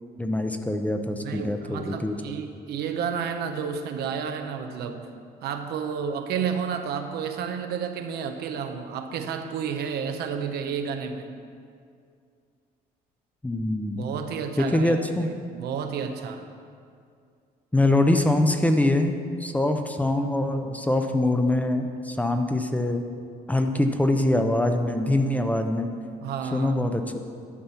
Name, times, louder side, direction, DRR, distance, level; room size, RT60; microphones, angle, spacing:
voice 1, 0.2-2.2 13.4-14.1 14.6-15.3 17.7-23.0 23.5-25.9 26.5-27.0, left 1 dB, 10° left, 6 dB, 0.6 m, -24 dB
voice 2, 1.2-5.1 5.4-11.3 14.0-14.9 15.3-16.4 26.2-26.7, right 7 dB, 75° right, 6 dB, 0.8 m, -31 dB
11.0 x 4.3 x 7.0 m, 2.3 s
cardioid pair, 110°, 17 cm